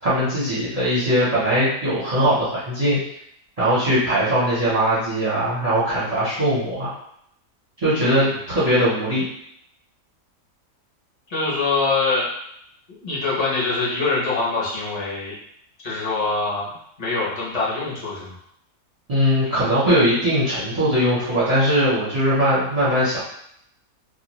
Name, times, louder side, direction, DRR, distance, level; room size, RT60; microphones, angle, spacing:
voice 1, 0.0-3.0 3.6-6.9 7.8-9.2 19.1-23.2, equal, 30° right, -11 dB, 0.7 m, -20 dB
voice 2, 8.0-8.4 11.3-12.3 13.0-15.3 15.8-16.7 17.0-18.4, left 3 dB, 35° left, -7 dB, 0.7 m, -24 dB
2.4 x 2.3 x 3.0 m, 0.72 s
omnidirectional pair, 1.6 m